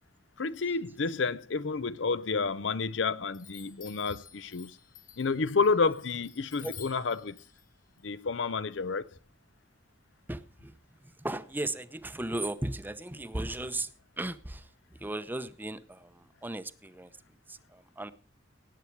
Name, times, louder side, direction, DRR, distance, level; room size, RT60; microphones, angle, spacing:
voice 1, 0.4-4.8 5.2-7.4 8.0-9.1, left 4 dB, 75° left, 0.7 m, -30 dB
Chime, 3.3-9.2, left 9 dB, 45° left, 2.1 m, -52 dB
voice 2, 10.3-17.2 17.5-18.1, right 1 dB, 10° right, 0.7 m, -37 dB
18.0 x 8.4 x 4.6 m
head